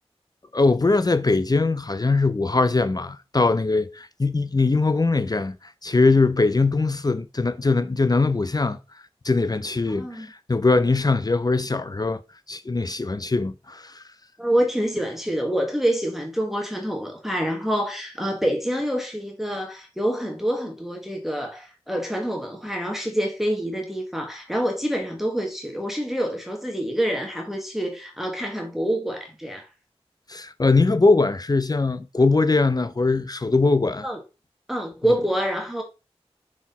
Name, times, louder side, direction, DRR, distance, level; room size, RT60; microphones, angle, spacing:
voice 1, 0.5-8.8 9.2-12.2 12.5-14.0 30.3-34.1, left 3 dB, 35° left, 0.5 m, -21 dB
voice 2, 9.9-10.3 14.4-29.6 34.0-34.2 34.7-35.8, equal, 5° right, 1.3 m, -26 dB
6.1 x 4.1 x 4.1 m
wide cardioid pair, 50°, 11 cm